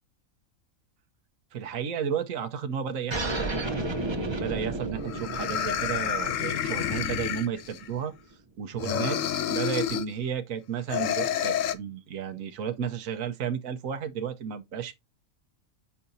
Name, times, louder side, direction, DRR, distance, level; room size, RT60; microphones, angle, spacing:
voice 1, 1.5-3.5 4.2-8.1 8.6-9.2 9.5-14.9, right 8 dB, 75° right, 1.3 m, -33 dB
sound 1, 3.1-8.2, right 2 dB, 25° right, 0.9 m, -33 dB
sound 2, 4.5-4.6 5.1-7.9 8.8-10.1 10.9-11.7, left 9 dB, 70° left, 1.0 m, -29 dB
8.3 x 5.6 x 2.7 m
omnidirectional pair, 1.5 m